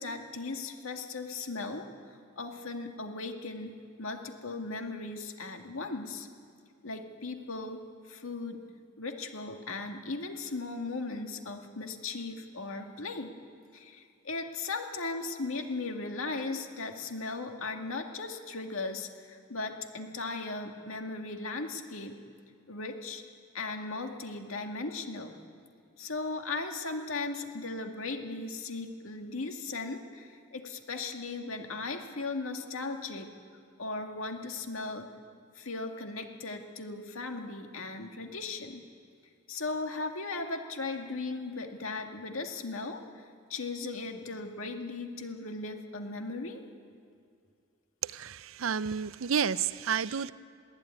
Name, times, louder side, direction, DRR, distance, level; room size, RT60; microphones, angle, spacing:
voice 1, 0.0-1.9 2.4-6.3 6.8-8.6 9.0-13.3 13.7-22.2 22.7-23.2 23.5-25.3 26.0-33.3 33.8-35.1 35.6-38.8 39.5-46.6, left 3 dB, 90° left, 4 dB, 2.1 m, -37 dB
voice 2, 48.0-50.3, right 7 dB, 85° right, 17 dB, 0.6 m, -30 dB
21.5 x 16.0 x 9.8 m, 2.3 s
head